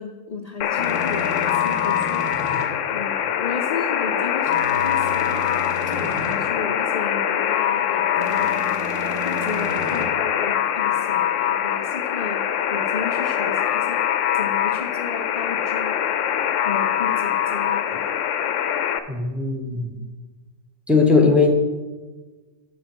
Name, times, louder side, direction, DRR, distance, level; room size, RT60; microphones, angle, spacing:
voice 1, 0.0-2.4 2.9-5.5 5.9-8.8 9.2-14.0 14.3-16.0 16.6-18.1, left 4 dB, 50° left, 4 dB, 0.4 m, -34 dB
Alarm, 0.6-19.0, left 10 dB, 70° left, 0.9 m, -23 dB
sound 1, 0.8-2.7 4.5-6.4 8.2-10.1, equal, 20° right, 1.1 m, -33 dB
voice 2, 19.1-19.9 20.9-21.5, left 4 dB, ahead, 2 dB, 0.9 m, -18 dB
7.7 x 6.0 x 6.0 m, 1.3 s
omnidirectional pair, 1.4 m